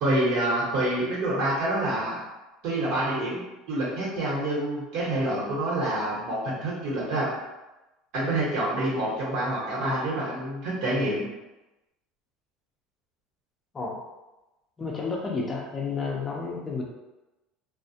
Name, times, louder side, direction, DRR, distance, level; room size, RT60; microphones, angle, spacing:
voice 1, 0.0-2.2 2.6-3.4 3.7-7.3 8.1-11.2, right 1 dB, 65° right, -5 dB, 1.0 m, -27 dB
voice 2, 13.7-14.1 14.8-16.8, left 4 dB, 25° left, -2 dB, 0.5 m, -31 dB
2.3 x 2.0 x 2.7 m, 1.0 s
supercardioid pair, 120°, 0 cm